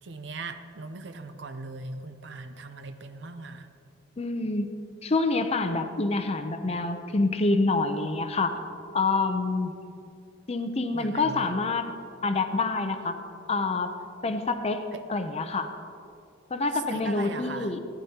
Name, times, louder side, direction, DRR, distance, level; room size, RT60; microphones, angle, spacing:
voice 1, 0.0-3.7 10.9-11.5 14.9-15.0 16.9-17.7, right 3 dB, 65° right, 9 dB, 0.6 m, -39 dB
voice 2, 4.2-4.7 5.0-8.6 8.9-9.8 10.5-11.9 12.2-13.2 13.5-13.9 14.2-15.7 16.5-17.8, left 3 dB, 30° left, 7 dB, 0.6 m, -27 dB
14.5 x 10.0 x 2.8 m, 2.5 s
head